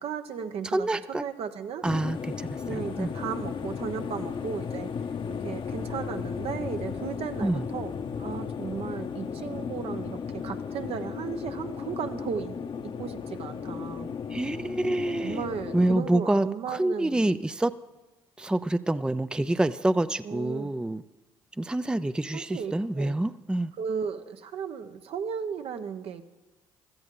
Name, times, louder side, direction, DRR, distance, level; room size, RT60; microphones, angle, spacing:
voice 1, 0.0-1.8 2.6-4.9 5.4-12.6 12.8-14.1 15.2-17.3 20.2-20.7 22.3-23.1 23.8-26.2, right 7 dB, 65° right, 8 dB, 1.0 m, -35 dB
voice 2, 0.7-1.2 1.8-3.1 7.4-7.6 14.3-15.4 15.7-17.7 18.4-21.0 21.6-23.7, right 1 dB, 10° right, 13 dB, 0.5 m, -27 dB
sound 1, 1.8-16.0, left 6 dB, 50° left, 0.9 m, -35 dB
16.5 x 13.5 x 3.8 m, 1.1 s
supercardioid pair, 60°, 11 cm